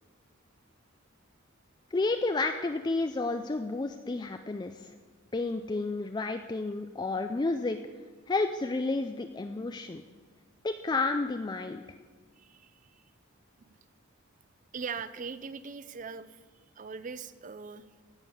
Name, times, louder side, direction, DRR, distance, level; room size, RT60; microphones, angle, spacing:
voice 1, 1.9-4.9 5.3-7.8 8.3-10.0 10.6-11.8, left 3 dB, 20° left, 7 dB, 0.4 m, -31 dB
voice 2, 12.4-13.0 13.6-13.8 14.7-16.4 16.8-17.8, right 5 dB, 40° right, 14 dB, 0.5 m, -41 dB
16.5 x 5.6 x 6.9 m, 1.5 s
head